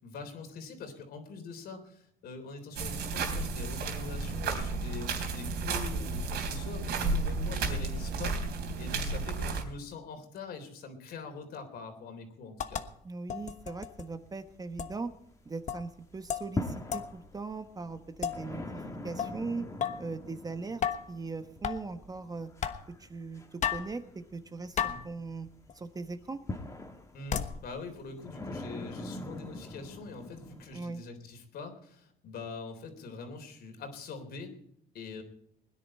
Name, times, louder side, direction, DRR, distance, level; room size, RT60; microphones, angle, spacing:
voice 1, 0.0-12.8 24.8-25.0 27.1-34.5 34.9-35.2, left 4 dB, 65° left, 5 dB, 3.5 m, -44 dB
sound 1, 2.8-9.6, right 3 dB, 75° right, 3.3 m, -32 dB
voice 2, 7.0-7.3 13.0-15.1 15.4-19.7 20.0-20.8 21.1-22.5 23.0-25.5 25.7-26.4 30.7-31.0, right 4 dB, 20° right, 9 dB, 1.1 m, -39 dB
sound 2, 12.6-12.9 13.3-14.1 14.8-14.9 15.7-15.9 16.3-16.5 16.9-17.1 18.2-18.4 19.2-19.4 19.8-20.1 20.8-21.2 21.6-21.8 22.6-22.8 23.6-23.9 24.8-25.1 25.7-25.8 27.3-27.6, left 8 dB, 45° left, 1.2 m, -33 dB
sound 3, 13.4-15.5 15.9-30.8, left 2 dB, 15° left, 2.1 m, -43 dB
21.0 x 10.5 x 4.3 m, 0.69 s
cardioid pair, 110°, 17 cm